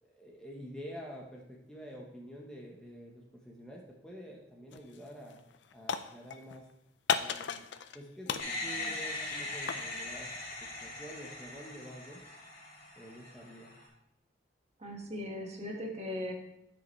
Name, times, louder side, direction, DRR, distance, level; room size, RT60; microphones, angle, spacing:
voice 1, 0.0-5.4 5.7-6.7 7.2-7.6 7.9-10.3 10.6-12.2 13.0-13.7, equal, 5° left, -2 dB, 0.9 m, -48 dB
sound 1, 4.7-5.0 5.3-6.6 7.1-8.0 8.3-9.9, left 7 dB, 75° left, 0.5 m, -35 dB
sound 2, 8.4-13.9, left 2 dB, 45° left, 3.1 m, -41 dB
voice 2, 14.8-16.3, left 1 dB, 40° right, -1 dB, 1.6 m, -38 dB
13.0 x 5.2 x 3.1 m, 0.81 s
head